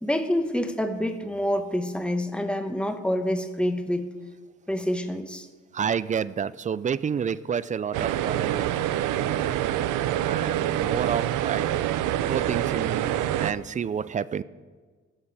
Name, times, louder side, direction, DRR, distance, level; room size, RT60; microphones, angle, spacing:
voice 1, 0.0-4.1 4.7-5.5, equal, 5° left, 7 dB, 1.1 m, -27 dB
voice 2, 5.7-9.6 10.2-11.6 12.3-13.1 13.4-14.4, right 7 dB, 25° right, 18 dB, 0.4 m, -30 dB
sound 1, 7.9-13.5, right 12 dB, 85° right, 0.6 m, -26 dB
19.0 x 6.6 x 4.8 m, 1.5 s
cardioid pair, 90°, 30 cm